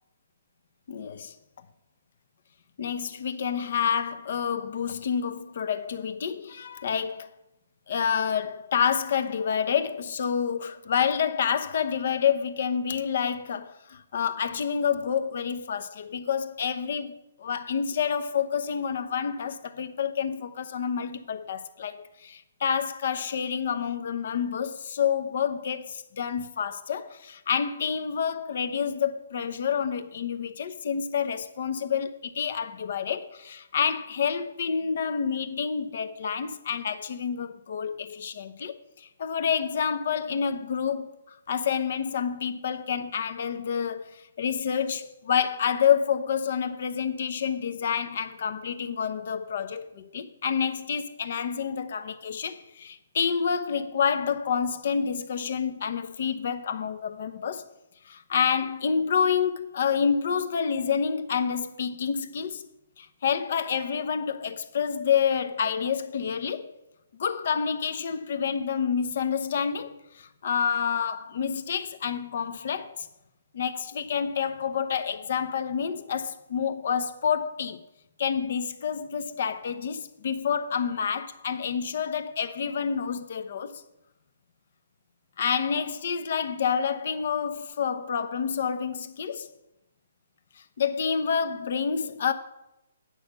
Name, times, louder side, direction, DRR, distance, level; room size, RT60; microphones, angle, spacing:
voice 1, 0.9-1.3 2.8-7.3 7.9-57.7 58.0-62.7 63.0-66.7 67.2-73.1 73.5-77.8 78.2-83.8 85.4-89.5 90.8-92.3, left 7 dB, 60° left, 0.9 m, -28 dB
8.9 x 6.5 x 6.8 m
hypercardioid pair, 150°, 0 cm